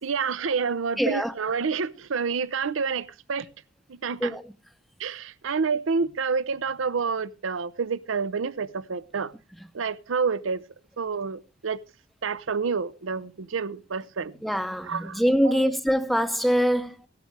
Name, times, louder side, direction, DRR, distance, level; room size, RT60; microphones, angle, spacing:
voice 1, 0.0-3.5 3.9-4.4 5.0-9.3 9.7-10.6 11.0-11.8 12.2-14.3 14.8-15.7, right 5 dB, 85° right, 0.6 m, -28 dB
voice 2, 1.0-1.3 4.2-4.4 14.4-17.0, equal, ahead, 0.6 m, -24 dB
15.5 x 11.5 x 3.3 m
head